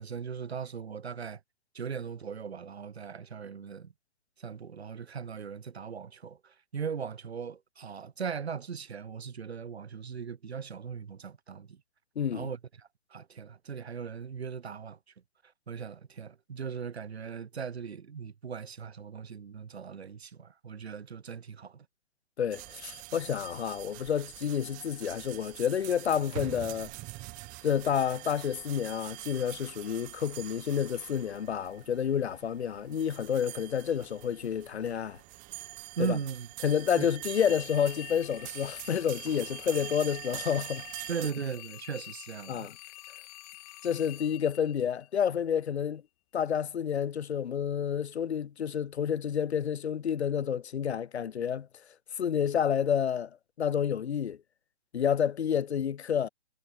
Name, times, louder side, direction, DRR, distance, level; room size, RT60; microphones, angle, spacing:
voice 1, 0.0-1.4 1.7-3.9 4.4-11.8 12.3-12.6 13.1-15.0 15.7-21.9 36.0-36.5 37.0-37.1 41.1-42.7, right 6 dB, 75° right, 2.2 m, -38 dB
voice 2, 12.2-12.5 22.4-26.9 27.6-35.2 36.0-36.2 36.6-40.9 42.5-42.8 43.8-46.0 46.3-51.7 52.2-53.3 53.6-54.4 54.9-56.3, left 8 dB, 85° left, 0.7 m, -29 dB
sound 1, 22.5-41.3, right 24 dB, 25° right, 3.6 m, -44 dB
sound 2, 37.2-45.4, left 20 dB, 35° left, 4.8 m, -48 dB
hypercardioid pair, 140°, 32 cm